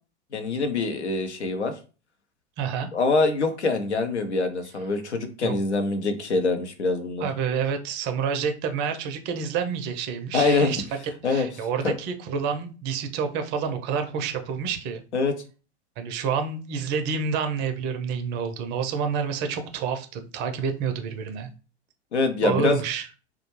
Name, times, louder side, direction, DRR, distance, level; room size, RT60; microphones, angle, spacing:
voice 1, 0.3-1.7 2.9-7.3 10.3-10.7 11.2-11.5 11.8-11.9 15.1-15.3 22.1-22.8, left 3 dB, 85° left, 7 dB, 0.6 m, -24 dB
voice 2, 2.6-2.9 5.4-5.5 7.2-10.8 11.2-15.0 16.0-21.5 22.4-23.1, right 6 dB, 35° right, 7 dB, 0.4 m, -28 dB
2.2 x 2.1 x 3.0 m, 0.35 s
figure-of-eight pair, 90°, 33 cm